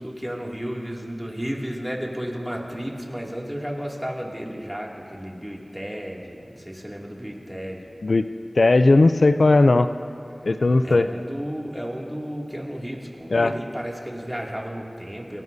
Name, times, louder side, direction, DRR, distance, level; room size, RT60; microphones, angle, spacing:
voice 1, 0.0-7.9 10.8-15.4, equal, 10° right, -2 dB, 2.4 m, -33 dB
voice 2, 8.6-9.9 10.4-11.1 13.3-13.5, left 2 dB, 85° left, 10 dB, 0.4 m, -17 dB
26.0 x 19.0 x 2.7 m, 2.5 s
wide cardioid pair, 60°, 0 cm